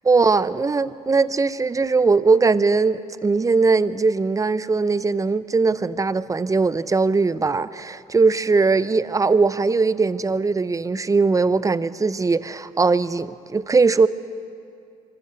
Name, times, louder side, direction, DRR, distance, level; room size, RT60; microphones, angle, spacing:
voice 1, 0.1-14.1, right 4 dB, 20° right, 0.7 m, -20 dB
24.5 x 14.0 x 7.7 m
hypercardioid pair, 65°, 17 cm